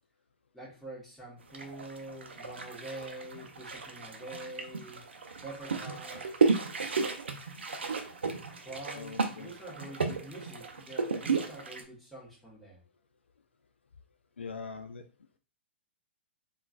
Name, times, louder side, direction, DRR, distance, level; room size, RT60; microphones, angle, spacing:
voice 1, 0.5-5.0 5.4-6.6 8.6-12.8, right 1 dB, ahead, -6 dB, 1.3 m, -46 dB
sound 1, 1.5-11.8, right 4 dB, 70° right, 0.6 m, -33 dB
voice 2, 8.9-9.5 14.4-15.0, left 5 dB, 75° left, 7 dB, 0.4 m, -42 dB
3.7 x 2.4 x 2.3 m, 0.35 s
figure-of-eight pair, 110°, 6 cm